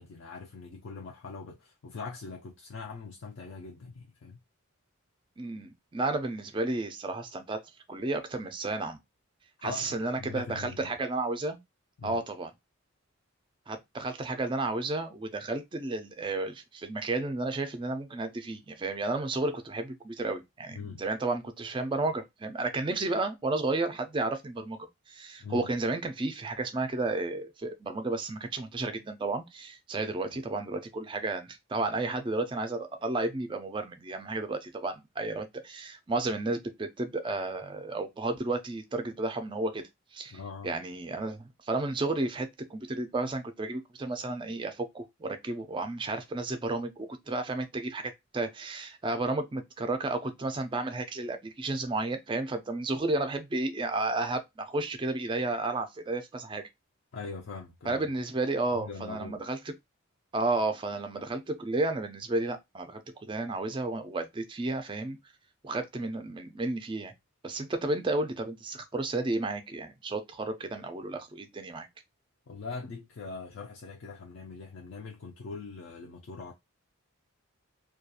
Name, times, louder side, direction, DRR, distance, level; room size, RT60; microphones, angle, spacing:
voice 1, 0.0-4.4 9.6-11.0 12.0-12.2 20.7-21.0 25.4-25.7 30.3-30.4 40.3-40.7 57.1-58.1 58.7-59.4 72.5-76.5, left 4 dB, 55° left, 0.4 m, -42 dB
voice 2, 5.4-7.6 7.9-9.0 9.6-11.6 12.0-12.5 13.7-39.8 40.1-40.4 40.6-56.7 57.9-59.6 60.3-65.2 65.6-67.1 67.4-71.9, right 2 dB, 20° right, 0.3 m, -32 dB
2.3 x 2.2 x 2.7 m
head